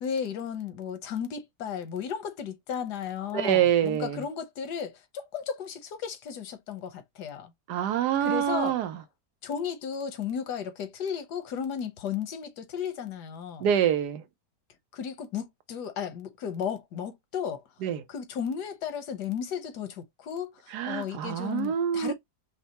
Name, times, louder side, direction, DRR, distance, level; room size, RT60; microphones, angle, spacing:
voice 1, 0.0-7.5 8.2-8.8 9.4-13.7 14.9-17.6 18.1-22.1, left 7 dB, 85° left, 1.5 m, -34 dB
voice 2, 3.3-4.2 7.7-8.9 13.6-14.2 17.8-18.0 20.7-22.1, right 10 dB, 85° right, 1.3 m, -26 dB
5.3 x 2.2 x 2.9 m
omnidirectional pair, 1.7 m